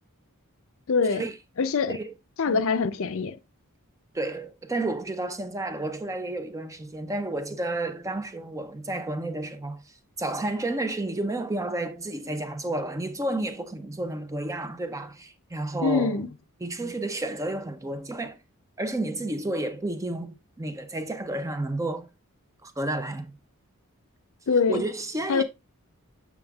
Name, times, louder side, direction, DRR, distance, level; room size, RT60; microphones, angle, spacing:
voice 1, 0.9-1.2 1.6-2.0 2.4-3.4 15.8-16.3 24.5-24.8 25.3-25.4, left 4 dB, 60° left, 0.5 m, -24 dB
voice 2, 4.1-9.8 10.2-16.2 16.6-18.4 18.8-22.1 22.6-23.4 24.7-25.4, right 2 dB, 15° right, 0.4 m, -31 dB
7.1 x 5.9 x 2.3 m
head